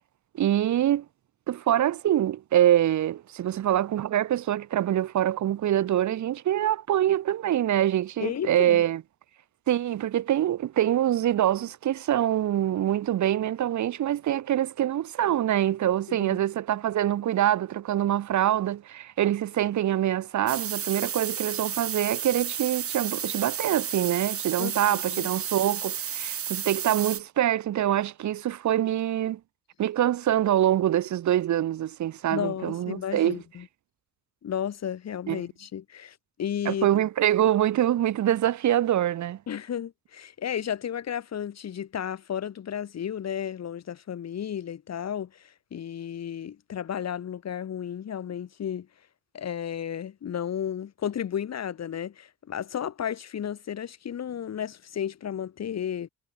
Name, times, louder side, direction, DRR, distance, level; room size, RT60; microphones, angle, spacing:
voice 1, 0.4-1.0 1.5-9.0 9.7-29.4 29.8-33.4 35.3-35.4 36.6-39.4, right 12 dB, 70° right, 2.7 m, -25 dB
voice 2, 8.2-8.8 16.1-16.4 24.6-25.3 32.3-33.7 34.4-36.9 39.5-48.9 49.3-56.1, left 9 dB, 60° left, 6.6 m, -33 dB
sound 1, 20.5-27.2, right 8 dB, 50° right, 1.7 m, -32 dB
cardioid pair, 90°, 30 cm